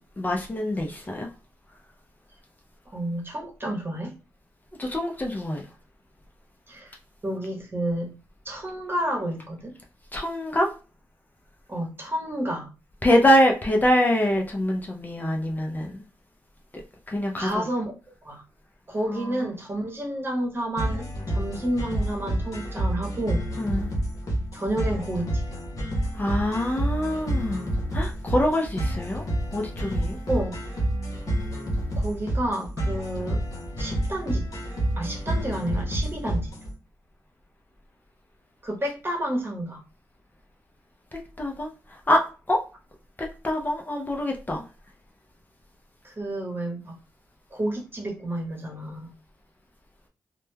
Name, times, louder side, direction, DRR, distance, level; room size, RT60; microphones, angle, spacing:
voice 1, 0.2-1.3 4.8-5.7 10.1-10.7 13.0-16.0 17.1-17.7 19.0-19.5 23.6-23.9 26.1-29.2 29.5-30.2 41.1-42.2 42.5-42.6 43.2-44.6, equal, 25° left, 0.5 m, -25 dB
voice 2, 2.9-4.1 6.7-6.9 7.2-8.1 8.4-9.7 11.7-12.7 17.4-17.9 18.2-18.4 18.9-23.5 24.5-25.6 30.3-30.6 32.0-33.4 33.8-34.5 35.0-36.5 38.6-39.8 46.0-47.0 47.5-49.1, right 1 dB, 30° right, 1.0 m, -30 dB
sound 1, 20.8-36.7, right 1 dB, 55° left, 0.9 m, -29 dB
2.9 x 2.1 x 2.2 m
cardioid pair, 65°, 7 cm